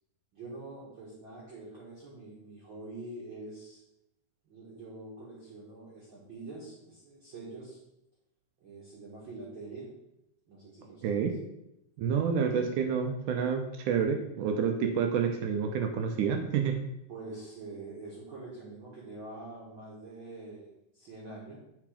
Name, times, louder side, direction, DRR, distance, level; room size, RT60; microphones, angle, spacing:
voice 1, 0.3-3.8 4.4-7.8 8.6-9.9 10.5-11.3 17.1-21.6, right 2 dB, 50° right, -5 dB, 1.7 m, -45 dB
voice 2, 12.0-16.7, right 6 dB, 75° right, 4 dB, 2.0 m, -28 dB
7.2 x 4.8 x 5.0 m, 0.85 s
omnidirectional pair, 4.1 m